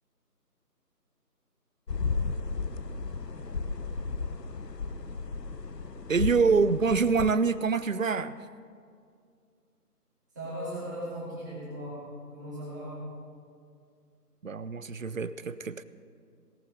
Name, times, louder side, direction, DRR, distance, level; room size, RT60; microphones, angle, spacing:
sound 1, 1.9-7.3, left 4 dB, 85° left, 0.9 m, -34 dB
voice 1, 6.1-8.4 14.4-15.8, right 5 dB, 55° right, 15 dB, 0.5 m, -25 dB
voice 2, 10.3-12.0 12.3-12.9, equal, 10° right, -10 dB, 2.6 m, -37 dB
17.5 x 9.2 x 5.2 m, 2.3 s
figure-of-eight pair, 170°, 48 cm